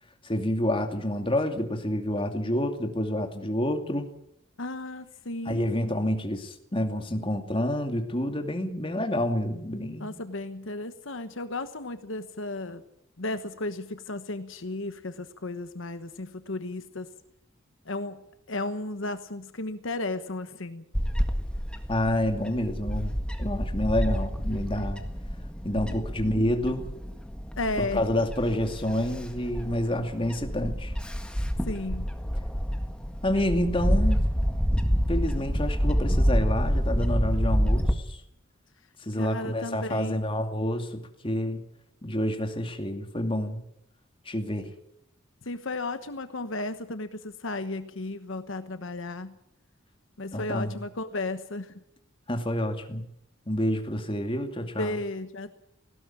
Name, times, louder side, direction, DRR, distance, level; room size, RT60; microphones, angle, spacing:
voice 1, 0.2-4.1 5.5-10.2 21.9-25.0 25.6-26.9 27.8-30.9 33.2-34.3 35.1-38.2 39.0-41.6 42.0-43.6 44.3-44.7 50.3-50.8 52.3-53.0 53.5-54.9, left 1 dB, 25° left, 5 dB, 2.5 m, -28 dB
voice 2, 4.6-5.7 10.0-12.8 13.2-17.1 17.8-20.8 27.6-28.1 31.7-32.1 39.2-40.2 45.4-49.3 50.2-51.7 54.8-55.5, left 2 dB, 70° left, 10 dB, 1.2 m, -34 dB
Bird / Wind, 20.9-37.9, equal, 5° left, 1.7 m, -28 dB
19.0 x 17.0 x 8.9 m, 0.76 s
head